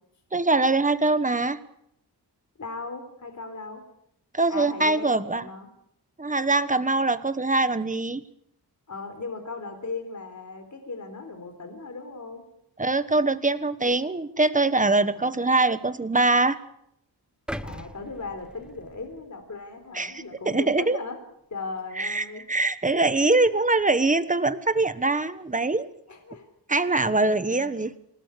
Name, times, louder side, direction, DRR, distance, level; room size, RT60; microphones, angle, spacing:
voice 1, 0.3-1.6 4.3-5.4 6.2-8.2 12.8-16.6 19.9-21.0 22.0-25.9 26.7-27.9, right 2 dB, 20° right, 12 dB, 1.2 m, -23 dB
voice 2, 2.6-3.8 4.5-5.7 8.9-12.4 15.2-15.5 17.6-21.2 21.5-22.4 22.9-23.1 26.1-26.5 26.7-26.9 27.2-27.8, left 3 dB, 45° left, 5 dB, 4.0 m, -37 dB
sound 1, 17.5-19.6 20.1-20.3, equal, ahead, 0.8 m, -40 dB
27.0 x 18.0 x 8.3 m, 0.75 s
wide cardioid pair, 150°, 42 cm